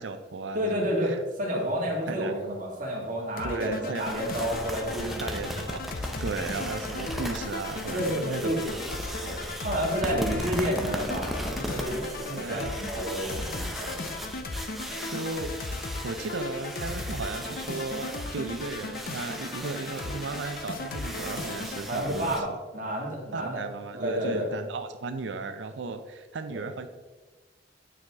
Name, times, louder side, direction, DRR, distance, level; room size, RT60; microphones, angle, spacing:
voice 1, 0.0-1.2 2.1-2.3 3.4-4.0 5.2-5.8 6.2-8.6 10.0-10.4 12.3-12.7 15.1-15.5 16.0-22.4 23.3-26.9, right 3 dB, 85° right, 8 dB, 0.5 m, -35 dB
voice 2, 0.5-5.3 7.8-8.7 9.2-14.4 14.8-15.0 21.9-23.6 23.9-24.5 26.5-26.6, equal, 45° right, -2 dB, 1.9 m, -30 dB
sound 1, 3.4-21.9, left 3 dB, 55° left, 0.6 m, -37 dB
sound 2, 4.0-22.4, equal, ahead, 0.6 m, -38 dB
9.0 x 4.7 x 3.6 m, 1.2 s
head